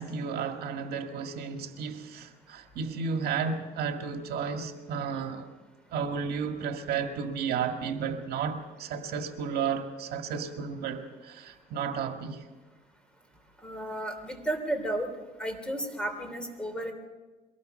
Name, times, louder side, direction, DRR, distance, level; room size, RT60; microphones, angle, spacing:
voice 1, 0.0-5.5 5.9-12.5, right 6 dB, 70° right, 1.9 m, -33 dB
voice 2, 13.6-15.1 15.4-16.9, right 1 dB, 5° left, 3.3 m, -33 dB
23.0 x 18.5 x 6.5 m
cardioid pair, 110°, 17 cm